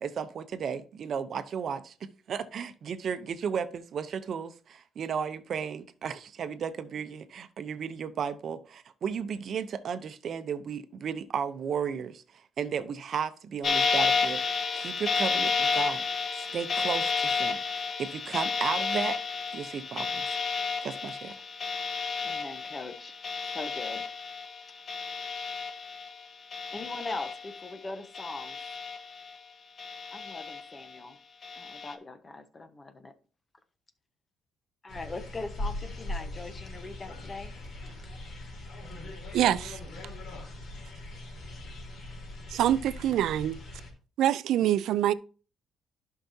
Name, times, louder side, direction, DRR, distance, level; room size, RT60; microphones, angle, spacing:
voice 1, 0.0-1.9 2.3-12.2 12.6-16.0 16.4-19.2 19.5-20.3 20.8-21.3, right 7 dB, 60° right, 0.8 m, -34 dB
sound 1, 13.6-26.2 26.5-27.7 28.1-29.4 29.8-30.8 31.4-31.9, left 5 dB, 50° left, 1.3 m, -31 dB
voice 2, 22.2-23.2 23.5-24.0 26.7-28.6 30.1-31.2 31.5-33.1 34.8-37.6 37.9-38.0 38.8-38.9, left 3 dB, 30° left, 1.1 m, -41 dB
sound 2, 34.9-43.9, left 1 dB, 65° left, 3.8 m, -40 dB
voice 3, 39.3-39.8 42.5-43.6 44.2-45.1, right 12 dB, 80° right, 0.4 m, -25 dB
11.5 x 5.7 x 2.8 m
cardioid pair, 90°, 0 cm